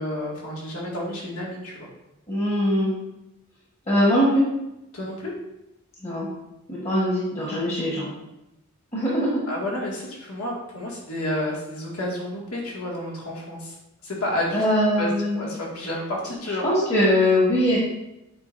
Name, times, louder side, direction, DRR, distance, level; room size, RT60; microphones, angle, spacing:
voice 1, 0.0-1.9 4.9-5.3 9.5-13.8 14.0-16.7, left 1 dB, 90° left, -3 dB, 2.0 m, -30 dB
voice 2, 2.3-2.9 3.9-4.4 6.0-6.3 6.7-8.1 8.9-9.4 14.5-15.4 16.6-17.8, left 1 dB, 30° left, -7 dB, 1.3 m, -21 dB
8.2 x 5.0 x 2.6 m, 0.90 s
head